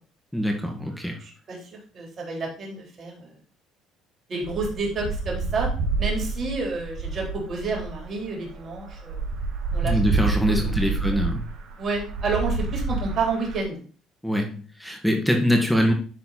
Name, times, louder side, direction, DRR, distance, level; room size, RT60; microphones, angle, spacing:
voice 1, 0.3-1.2 9.8-11.5 14.2-15.9, equal, ahead, 3 dB, 2.1 m, -23 dB
voice 2, 1.2-1.7 1.9-3.3 4.3-5.7 6.0-9.2 9.7-11.2 11.8-13.8, right 3 dB, 50° right, -1 dB, 4.0 m, -30 dB
sound 1, 4.4-13.6, right 4 dB, 65° right, 1.6 m, -28 dB
11.0 x 4.0 x 4.3 m, 0.39 s
supercardioid pair, 75°, 0 cm